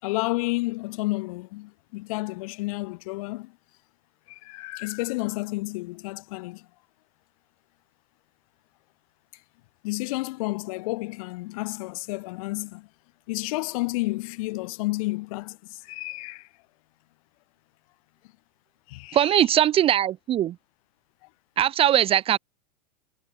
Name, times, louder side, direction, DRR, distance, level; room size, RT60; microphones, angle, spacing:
voice 1, 0.0-3.5 4.3-6.7 9.8-12.9 13.3-16.5 18.9-19.5, left 23 dB, 55° left, 4.0 m, -31 dB
voice 2, 19.1-20.5 21.6-22.4, right 11 dB, 25° right, 0.6 m, -20 dB
hypercardioid pair, 100°, 21 cm